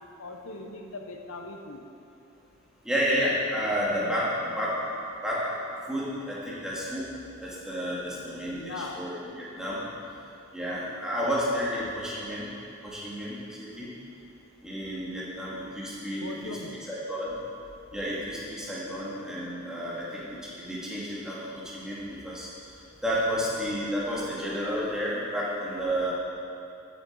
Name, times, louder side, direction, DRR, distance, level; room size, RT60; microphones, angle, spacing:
voice 1, 0.0-1.8 8.5-9.0 16.2-16.8, left 2 dB, 70° left, 3 dB, 1.1 m, -39 dB
voice 2, 2.8-4.8 5.2-5.4 5.9-7.0 7.4-9.8 10.5-12.5 12.8-13.9 14.6-16.6 16.9-17.4 17.9-22.5 23.0-26.1, equal, 5° right, -8 dB, 2.5 m, -31 dB
13.0 x 8.8 x 4.8 m, 2.7 s
head